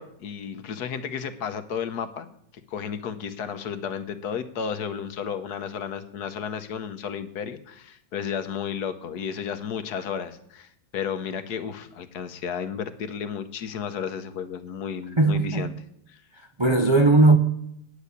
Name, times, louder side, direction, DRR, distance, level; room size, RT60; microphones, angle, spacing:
voice 1, 0.0-2.3 2.7-15.7 16.1-16.2, left 7 dB, 70° left, 1.4 m, -33 dB
voice 2, 15.2-15.7 16.3-17.4, right 3 dB, 45° right, 0.3 m, -18 dB
9.5 x 8.4 x 8.2 m
omnidirectional pair, 1.8 m